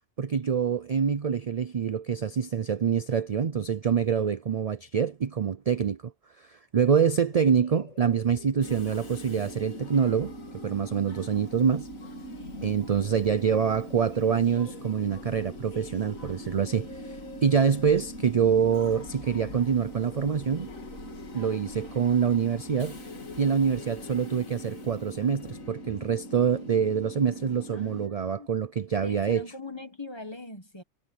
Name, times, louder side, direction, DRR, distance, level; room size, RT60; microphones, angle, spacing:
voice 1, 0.2-6.1 6.4-10.3 10.6-11.9 12.6-20.7 21.3-23.0 23.4-29.5, right 7 dB, 50° right, 0.4 m, -26 dB
sound 1, 7.0-24.4, left 2 dB, 70° left, 2.9 m, -47 dB
Train / Subway metro underground, 8.6-28.1, equal, 85° left, 2.9 m, -43 dB
voice 2, 29.0-30.8, left 2 dB, 20° left, 1.6 m, -40 dB
omnidirectional pair, 1.4 m